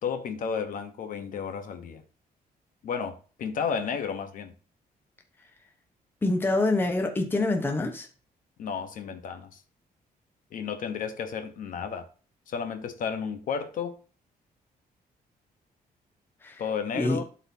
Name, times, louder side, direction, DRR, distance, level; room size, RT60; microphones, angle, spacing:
voice 1, 0.0-2.0 2.8-4.5 8.6-9.6 10.5-12.1 12.5-14.0 16.6-17.2, left 6 dB, 60° left, 1.0 m, -32 dB
voice 2, 6.2-8.1 16.4-16.6 17.0-17.2, left 2 dB, 15° left, 1.0 m, -26 dB
12.0 x 4.3 x 2.7 m
cardioid pair, 180°, 16 cm